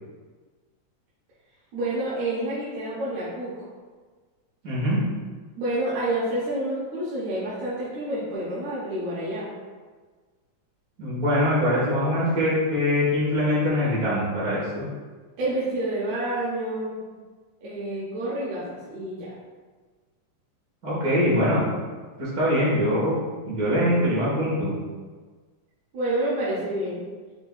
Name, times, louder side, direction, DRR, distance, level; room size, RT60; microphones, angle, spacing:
voice 1, 1.7-3.6 5.6-9.5 15.4-17.1 17.6-19.3 25.9-27.0, right 1 dB, 75° right, -9 dB, 2.2 m, -28 dB
voice 2, 4.6-5.0 11.0-14.8 20.8-21.6 22.2-23.2 23.4-24.7, equal, 45° right, -8 dB, 1.2 m, -23 dB
5.8 x 3.4 x 2.3 m, 1.4 s
omnidirectional pair, 3.4 m